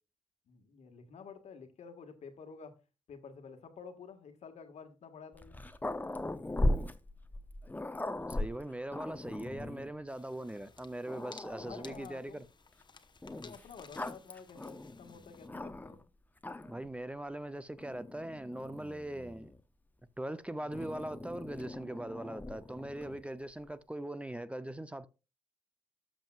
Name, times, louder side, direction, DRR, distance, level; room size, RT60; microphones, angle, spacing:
voice 1, 0.5-2.8 3.1-5.6 11.6-12.5 13.3-16.0 20.6-20.9, left 5 dB, 65° left, 1.7 m, -51 dB
Growling, 5.3-9.9 10.6-10.7 11.1-12.1 13.2-16.0 16.4-16.9 17.8-19.6 20.7-23.2, left 1 dB, 15° left, 0.8 m, -39 dB
voice 2, 8.3-12.4 16.6-19.5 20.2-25.1, right 1 dB, 10° right, 0.6 m, -41 dB
sound 1, 10.1-15.5, left 5 dB, 35° left, 1.1 m, -58 dB
13.5 x 5.3 x 2.4 m
supercardioid pair, 60°, 12 cm